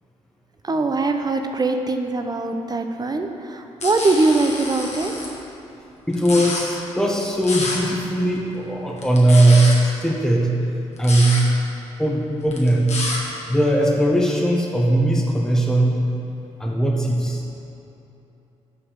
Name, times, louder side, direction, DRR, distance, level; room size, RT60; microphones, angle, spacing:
voice 1, 0.6-5.1, right 3 dB, 25° right, 5 dB, 0.7 m, -22 dB
sound 1, 3.8-5.3 6.1-6.6 7.4-7.8 9.0-9.8 11.0-11.4 12.5-13.2, left 2 dB, 45° left, 1.5 m, -28 dB
voice 2, 6.1-9.7 10.0-10.5 11.0-11.4 12.0-13.0 13.5-16.0 16.6-17.4, right 1 dB, 5° left, -2 dB, 1.0 m, -19 dB
5.6 x 5.5 x 6.3 m, 2.9 s
figure-of-eight pair, 40°, 16 cm